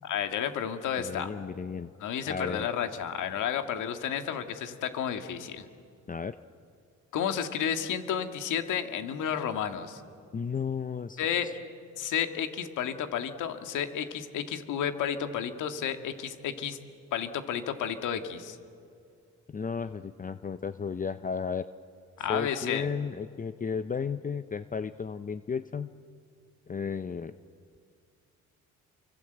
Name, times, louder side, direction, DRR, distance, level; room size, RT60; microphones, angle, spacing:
voice 1, 0.0-1.3 2.0-5.7 7.1-10.0 11.2-11.5 12.0-16.8 17.1-18.6 22.2-22.9, left 8 dB, 85° left, 7 dB, 1.9 m, -31 dB
voice 2, 1.0-1.9 2.3-2.7 6.1-6.4 10.3-11.2 19.5-21.7 22.3-25.9 26.7-27.3, left 6 dB, 25° left, 11 dB, 0.7 m, -33 dB
29.0 x 24.5 x 8.0 m, 2.3 s
cardioid pair, 90°, 30 cm